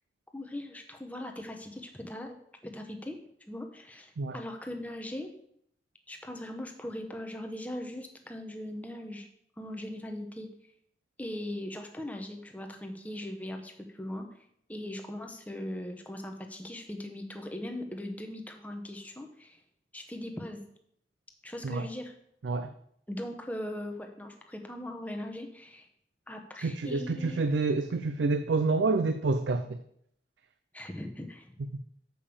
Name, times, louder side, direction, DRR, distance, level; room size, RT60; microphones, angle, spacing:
voice 1, 0.3-2.4 2.6-3.2 3.5-5.3 6.1-9.3 9.6-10.5 11.2-14.3 14.7-19.6 19.9-20.6 21.4-22.2 23.1-25.9 26.3-27.4 30.7-31.5, left 1 dB, 10° left, 4 dB, 0.9 m, -40 dB
voice 2, 26.6-29.8, right 3 dB, 85° right, 9 dB, 0.5 m, -28 dB
6.9 x 5.3 x 7.0 m, 0.70 s
head